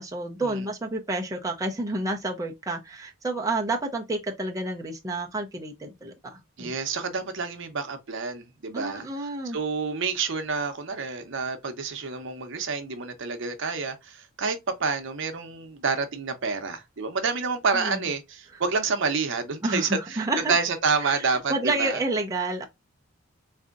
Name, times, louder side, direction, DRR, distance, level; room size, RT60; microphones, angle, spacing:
voice 1, 0.0-6.7 8.7-9.6 17.7-18.0 19.6-20.6 21.0-22.7, right 2 dB, 15° right, 0.5 m, -30 dB
voice 2, 6.6-9.1 9.4-22.0, right 4 dB, 65° right, 0.7 m, -28 dB
4.1 x 2.6 x 2.4 m
head